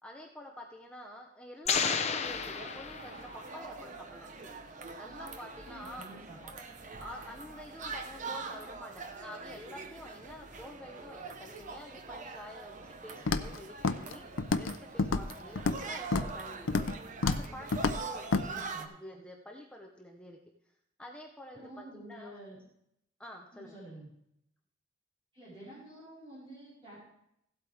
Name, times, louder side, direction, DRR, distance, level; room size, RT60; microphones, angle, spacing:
voice 1, 0.0-4.3 5.0-6.1 6.4-6.5 7.0-16.8 17.2-20.4 21.0-22.4 23.2-23.8, left 1 dB, 5° left, 1 dB, 0.9 m, -48 dB
sound 1, 1.7-3.5, left 6 dB, 35° left, 0.8 m, -32 dB
sound 2, 2.2-18.9, right 4 dB, 40° right, 0.9 m, -44 dB
voice 2, 5.6-6.4 18.3-18.9 21.5-22.6 23.5-24.1 25.3-27.0, right 1 dB, 25° right, -11 dB, 4.7 m, -49 dB
Walk footsteps, 13.3-13.6 13.8-14.1 14.4-14.7 15.0-15.8 16.1-16.4 16.7-17.0 17.2-17.5 17.7-18.0 18.3-18.5, left 3 dB, 80° left, 0.6 m, -29 dB
16.0 x 8.2 x 3.5 m, 0.77 s
head